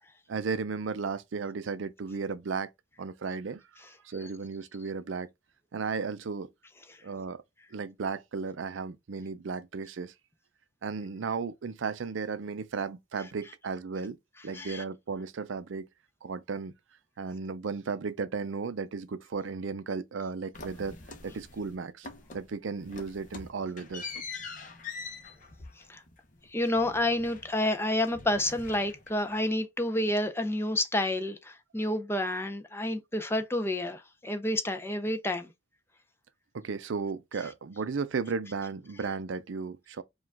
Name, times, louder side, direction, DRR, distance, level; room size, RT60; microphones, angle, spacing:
voice 1, 0.3-2.7 3.0-5.3 5.7-6.5 7.0-7.4 7.7-10.1 10.8-14.2 14.4-15.9 16.2-16.7 17.2-21.0 21.2-22.1 22.3-24.2 36.5-40.0, right 5 dB, 85° right, 0.5 m, -35 dB
voice 2, 14.5-14.8 25.9-26.0 26.5-35.5, left 1 dB, 15° left, 0.5 m, -29 dB
sound 1, 20.5-21.7 22.0-22.5 22.8-27.8 28.0-29.3, left 4 dB, 40° left, 0.8 m, -44 dB
4.8 x 2.4 x 3.4 m
head